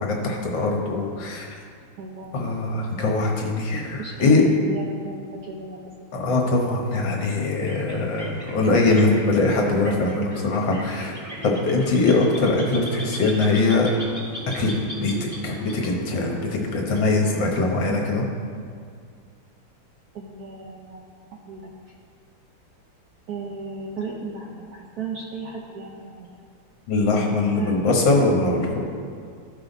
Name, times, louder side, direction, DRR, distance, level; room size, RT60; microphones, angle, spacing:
voice 1, 0.0-1.5 2.3-4.4 6.1-11.1 11.4-13.9 14.6-14.7 15.0-18.2 26.9-28.8, left 3 dB, 65° left, 0 dB, 1.9 m, -22 dB
voice 2, 2.0-2.4 4.0-5.8 17.9-18.6 20.1-21.0 21.3-21.7 23.3-26.3 27.2-27.8 28.1-28.2, right 4 dB, 60° right, -2 dB, 1.1 m, -35 dB
sound 1, 7.4-17.7, right 1 dB, 10° right, 1.5 m, -38 dB
14.0 x 5.7 x 4.0 m, 2.2 s
omnidirectional pair, 2.3 m